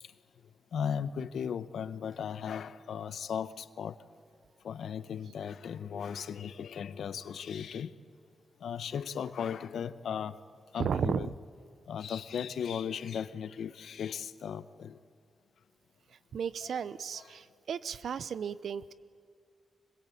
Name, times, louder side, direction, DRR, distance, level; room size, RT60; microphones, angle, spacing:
voice 1, 0.7-3.9 4.6-7.9 8.6-10.3 10.7-11.3 11.9-14.9 16.6-16.7, left 7 dB, 90° left, 0.9 m, -36 dB
voice 2, 10.8-11.3 16.3-18.9, right 7 dB, 75° right, 0.8 m, -34 dB
26.0 x 21.0 x 8.5 m
wide cardioid pair, 115°, 0 cm